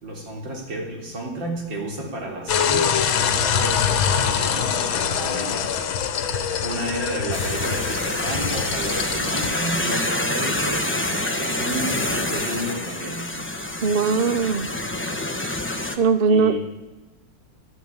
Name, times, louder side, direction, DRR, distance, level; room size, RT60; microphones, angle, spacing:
voice 1, 0.0-5.7 6.4-13.3 16.3-16.6, right 1 dB, 65° right, 0 dB, 4.2 m, -31 dB
sound 1, 2.5-9.5, left 7 dB, 80° left, 1.9 m, -24 dB
sound 2, 7.3-16.0, left 1 dB, 10° left, 0.7 m, -27 dB
voice 2, 13.8-14.7 16.0-16.6, right 5 dB, 80° right, 13 dB, 0.5 m, -19 dB
12.5 x 11.5 x 8.8 m, 1.2 s
omnidirectional pair, 2.2 m